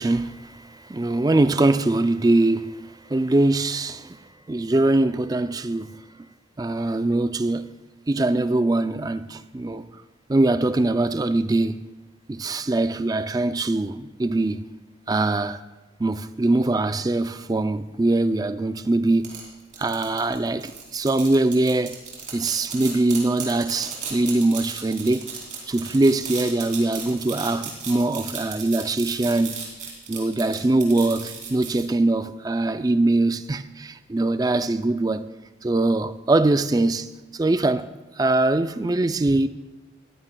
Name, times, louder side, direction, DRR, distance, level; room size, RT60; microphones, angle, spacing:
voice 1, 0.0-4.2 4.5-6.0 6.6-7.7 8.1-9.9 10.3-11.8 12.3-14.7 15.1-15.6 16.0-19.4 19.8-22.0 22.3-25.3 25.7-29.6 30.1-35.3 35.6-37.9 38.2-39.5, right 2 dB, 20° right, 0.3 m, -22 dB
sound 1, 19.2-31.8, right 6 dB, 40° right, 3.2 m, -35 dB
19.5 x 14.5 x 2.3 m
head